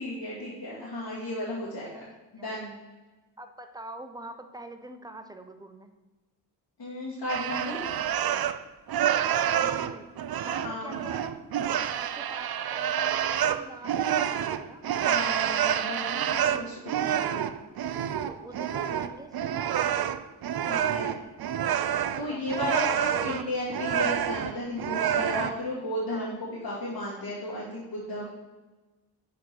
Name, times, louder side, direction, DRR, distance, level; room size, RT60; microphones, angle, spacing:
voice 1, 0.0-1.9 2.3-2.8 6.8-7.8 10.6-10.9 15.1-17.5 20.7-21.1 22.2-28.3, left 1 dB, 70° left, -9 dB, 2.7 m, -34 dB
voice 2, 1.8-2.5 3.4-5.9 9.3-11.4 12.0-14.8 18.3-19.7 22.3-22.4 23.1-23.4 26.1-26.3 28.2-28.3, right 1 dB, 10° right, 7 dB, 0.9 m, -45 dB
sound 1, 7.3-8.6 8.9-25.6, right 9 dB, 60° right, 0.5 m, -28 dB
6.3 x 4.6 x 6.1 m, 1.2 s
cardioid pair, 45°, 43 cm